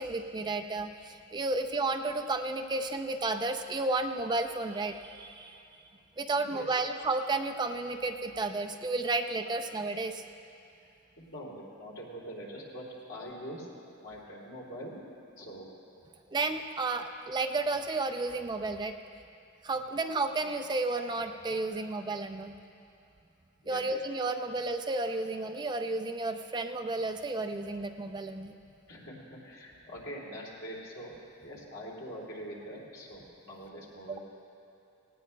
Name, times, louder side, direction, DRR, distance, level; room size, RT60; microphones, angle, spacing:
voice 1, 0.0-5.6 6.2-10.2 16.3-18.9 19.6-22.5 23.7-28.5 34.1-34.2, right 3 dB, 20° right, 6 dB, 0.4 m, -32 dB
voice 2, 6.4-6.8 11.2-15.1 15.4-15.7 21.7-21.8 23.6-23.8 28.9-31.1 31.4-34.2, equal, 90° left, -4 dB, 2.8 m, -44 dB
18.0 x 18.0 x 2.2 m, 2.6 s
head